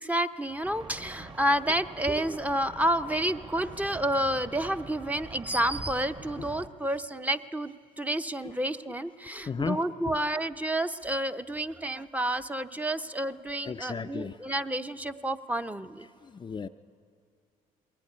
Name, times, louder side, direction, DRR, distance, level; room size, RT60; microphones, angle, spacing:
voice 1, 0.0-16.1, right 1 dB, 10° right, 0.7 m, -30 dB
sound 1, 0.6-6.7, right 2 dB, 30° right, 1.5 m, -45 dB
voice 2, 9.5-9.8 13.6-14.4 16.2-16.7, left 5 dB, 30° left, 0.5 m, -34 dB
21.0 x 17.0 x 10.0 m
supercardioid pair, 75°, 16 cm